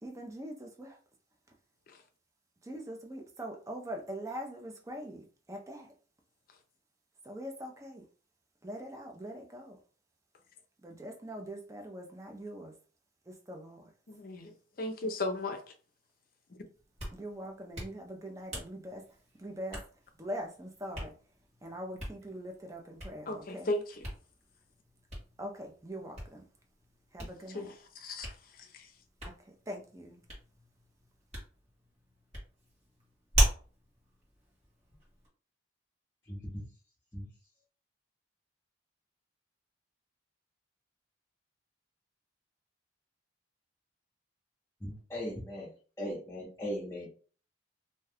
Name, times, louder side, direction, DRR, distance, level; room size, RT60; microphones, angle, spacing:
voice 1, 0.0-1.0 2.6-5.9 7.2-8.0 8.6-9.8 10.8-12.7 13.3-13.9 17.1-19.0 19.4-19.8 20.2-21.1 21.6-23.8 25.4-26.4 27.1-27.7 29.2-30.2, equal, 15° right, 0.5 m, -42 dB
voice 2, 14.1-15.6 23.3-24.1 27.5-27.7 28.0-28.3 28.7-28.9, left 2 dB, 50° left, 0.5 m, -36 dB
Hands, 16.7-35.3, equal, 35° right, 1.5 m, -39 dB
voice 3, 36.3-36.6 37.1-37.3 44.8-45.7 46.0-47.1, equal, 15° left, 0.8 m, -38 dB
2.6 x 2.3 x 3.4 m
head